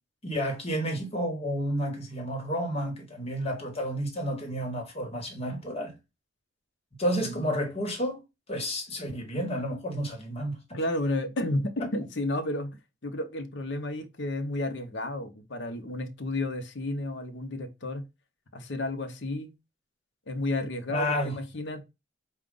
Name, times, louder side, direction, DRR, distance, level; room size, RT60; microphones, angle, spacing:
voice 1, 0.2-5.9 7.0-8.2 8.5-10.8 20.9-21.4, equal, 35° left, 1.3 m, -31 dB
voice 2, 7.2-7.7 10.7-18.1 18.5-19.5 20.3-21.8, left 1 dB, 65° left, 0.8 m, -32 dB
4.8 x 2.4 x 3.8 m
head